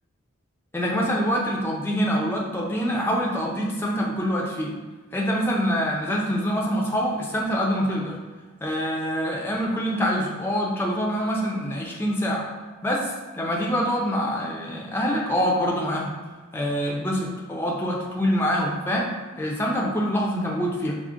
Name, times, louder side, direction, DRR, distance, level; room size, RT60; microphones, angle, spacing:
voice 1, 0.7-4.7 5.1-8.2 8.6-12.5 12.8-16.1 16.5-19.1 19.4-21.0, equal, 10° left, -2 dB, 0.4 m, -25 dB
4.9 x 2.1 x 3.6 m, 1.3 s
head